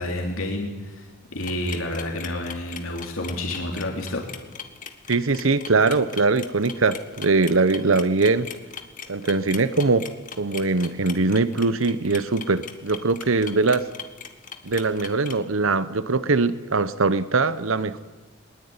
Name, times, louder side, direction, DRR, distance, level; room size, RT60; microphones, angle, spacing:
voice 1, 0.0-4.2, left 1 dB, 85° left, 1 dB, 3.5 m, -29 dB
sound 1, 1.4-15.4, left 7 dB, 40° left, 1.8 m, -39 dB
voice 2, 5.1-8.5 9.1-10.1 10.4-13.9 14.6-18.0, right 3 dB, 80° right, 15 dB, 1.0 m, -21 dB
22.0 x 21.0 x 9.7 m, 1.2 s
head